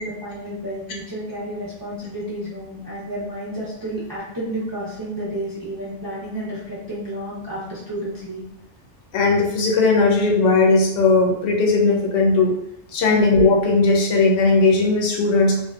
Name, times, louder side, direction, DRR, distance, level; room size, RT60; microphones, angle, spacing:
voice 1, 0.0-8.4 13.1-13.2, right 1 dB, 35° right, -8 dB, 0.3 m, -31 dB
voice 2, 9.1-12.6 12.9-15.6, left 3 dB, 85° left, 0 dB, 0.9 m, -17 dB
2.6 x 2.2 x 2.3 m, 0.81 s
omnidirectional pair, 1.2 m